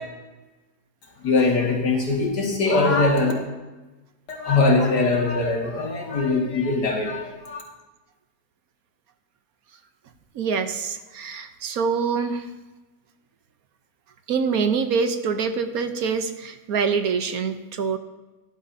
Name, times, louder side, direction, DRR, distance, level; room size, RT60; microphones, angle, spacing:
voice 1, 1.2-3.3 4.3-7.6, left 3 dB, 90° left, 0 dB, 2.6 m, -21 dB
voice 2, 10.3-12.5 14.3-18.0, right 5 dB, 65° right, 8 dB, 1.3 m, -25 dB
18.5 x 11.5 x 2.8 m, 1.1 s
omnidirectional pair, 1.7 m